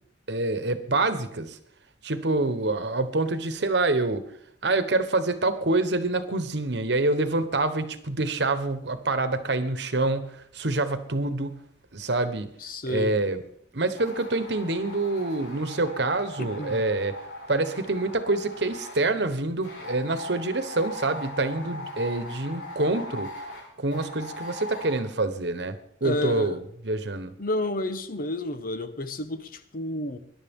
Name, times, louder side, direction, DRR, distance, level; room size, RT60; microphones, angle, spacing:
voice 1, 0.3-1.6 2.0-4.2 4.6-11.6 11.9-12.5 12.9-13.4 13.7-17.2 17.5-23.3 23.8-27.3, right 2 dB, 65° right, 1.2 m, -26 dB
voice 2, 12.6-13.2 16.4-16.9 26.0-26.6 27.4-30.2, left 1 dB, 50° left, 1.0 m, -31 dB
sound 1, 14.0-19.0 19.6-25.0, left 1 dB, 75° left, 6.9 m, -40 dB
21.5 x 11.0 x 3.7 m
head